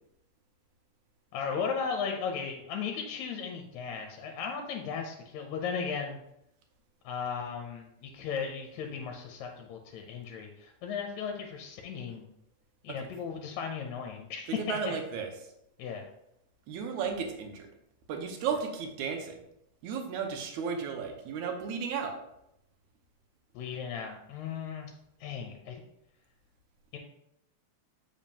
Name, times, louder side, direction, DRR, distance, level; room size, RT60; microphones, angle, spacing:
voice 1, 1.3-6.2 7.0-12.3 12.8-14.9 15.8-16.1 23.5-24.9 25.2-25.8 26.9-27.0, left 6 dB, 75° left, 3 dB, 1.9 m, -36 dB
voice 2, 14.6-15.3 16.7-17.7 18.1-19.4 19.8-22.1, right 6 dB, 80° right, 3 dB, 2.2 m, -34 dB
7.1 x 5.1 x 2.8 m, 0.80 s
omnidirectional pair, 3.4 m